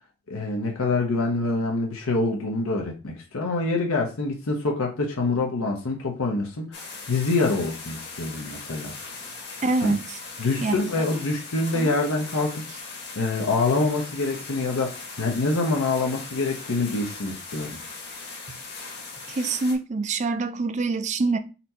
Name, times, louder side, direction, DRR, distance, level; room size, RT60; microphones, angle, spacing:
voice 1, 0.3-6.8 7.1-8.9 9.8-9.9 10.4-12.6 13.2-17.8, left 3 dB, 80° left, 0.8 m, -26 dB
sound 1, 6.7-19.8, left 4 dB, 50° left, 1.3 m, -39 dB
voice 2, 9.6-10.2 10.6-11.0 11.7-12.0 18.5-18.6 19.3-21.4, right 3 dB, 35° right, 0.4 m, -26 dB
4.2 x 2.7 x 4.2 m
head